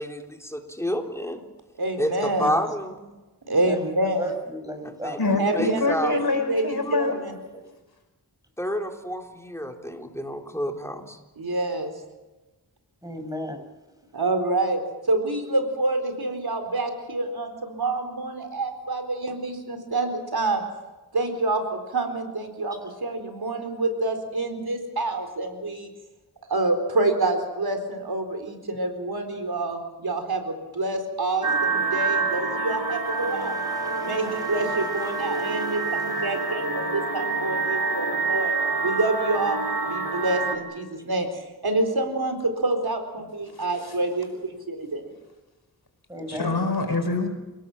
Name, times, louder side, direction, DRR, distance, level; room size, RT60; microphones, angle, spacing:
voice 1, 0.0-1.4 2.0-3.1 5.0-5.2 5.5-6.1 8.6-11.2, equal, 5° left, 3 dB, 3.7 m, -29 dB
voice 2, 1.8-2.5 3.5-4.3 5.4-7.3 11.4-11.9 14.1-20.6 21.1-25.9 26.5-33.5 34.0-38.5 38.8-45.1, right 2 dB, 75° right, 6 dB, 4.2 m, -27 dB
voice 3, 4.2-5.6 7.1-7.2 13.0-13.6 33.3-36.2 46.1-46.7, equal, 10° right, 5 dB, 5.9 m, -37 dB
voice 4, 5.2-7.1 46.3-47.3, left 3 dB, 75° left, 5 dB, 5.1 m, -25 dB
sound 1, 31.4-40.6, right 4 dB, 55° right, 3.5 m, -27 dB
29.0 x 18.0 x 7.4 m, 1.1 s
wide cardioid pair, 65°, 38 cm